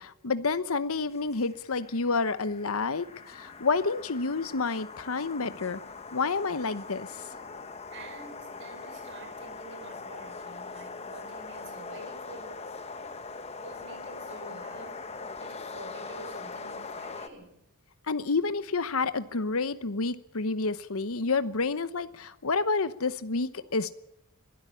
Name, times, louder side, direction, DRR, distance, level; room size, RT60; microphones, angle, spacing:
voice 1, 0.0-5.8 6.1-7.1 18.1-24.0, left 4 dB, 80° left, 13 dB, 1.0 m, -29 dB
sound 1, 1.1-17.3, left 4 dB, 30° left, 1.1 m, -42 dB
voice 2, 7.9-12.6 13.6-15.0 15.4-17.6, right 2 dB, 55° right, 6 dB, 5.3 m, -47 dB
22.0 x 13.0 x 9.8 m, 0.81 s
head